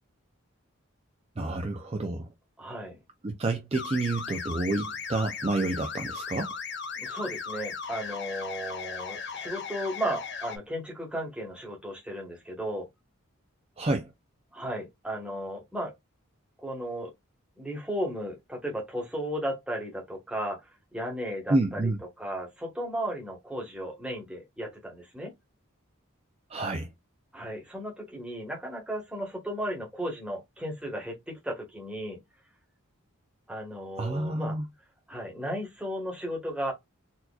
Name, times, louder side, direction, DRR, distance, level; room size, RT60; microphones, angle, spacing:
voice 1, 1.4-2.3 3.2-6.5 13.8-14.1 21.5-22.0 26.5-26.9 34.0-34.7, right 2 dB, 25° right, 0.4 m, -29 dB
voice 2, 2.6-3.0 7.0-12.9 14.5-15.9 16.6-17.1 17.6-20.6 20.9-21.9 22.2-25.3 27.3-32.2 33.5-34.6 35.1-36.7, equal, 5° right, 1.2 m, -35 dB
sound 1, 3.7-10.6, left 5 dB, 50° left, 0.8 m, -37 dB
4.2 x 2.8 x 2.3 m
head